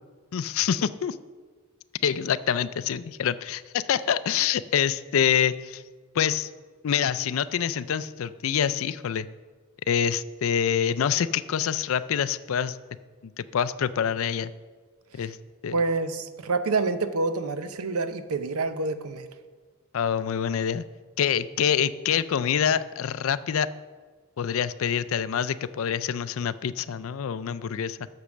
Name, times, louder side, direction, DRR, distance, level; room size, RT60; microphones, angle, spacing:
voice 1, 0.3-1.2 2.0-5.8 6.2-6.5 6.8-9.3 9.9-12.8 13.2-14.5 15.1-15.4 15.6-15.7 19.9-20.8 21.2-23.7 24.4-28.1, left 8 dB, 65° left, 16 dB, 0.4 m, -26 dB
voice 2, 15.7-19.3, right 3 dB, 90° right, 11 dB, 0.6 m, -27 dB
8.3 x 6.8 x 6.2 m, 1.5 s
head